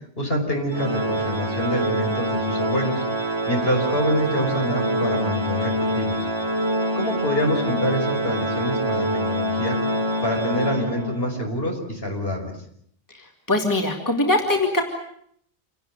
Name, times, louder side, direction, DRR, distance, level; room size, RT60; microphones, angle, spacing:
voice 1, 0.2-3.0 3.5-6.3 7.0-9.8 10.2-12.5, equal, 55° left, 2 dB, 6.0 m, -26 dB
Organ, 0.7-11.4, right 1 dB, 25° right, 1.8 m, -25 dB
voice 2, 13.1-14.8, left 2 dB, 15° left, 2 dB, 2.9 m, -22 dB
27.5 x 18.5 x 9.2 m, 0.68 s
omnidirectional pair, 1.2 m